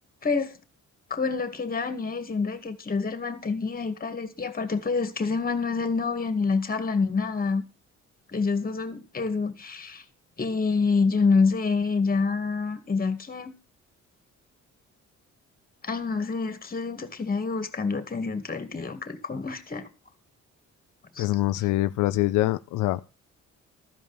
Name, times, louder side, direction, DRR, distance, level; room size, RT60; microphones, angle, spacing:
voice 1, 0.2-0.5 1.1-7.6 8.3-10.0 10.4-13.5 15.8-19.9 21.2-21.3, left 4 dB, 30° left, 2.2 m, -27 dB
voice 2, 21.2-23.1, left 16 dB, 90° left, 0.5 m, -24 dB
14.0 x 5.2 x 7.0 m
cardioid pair, 90°, 30 cm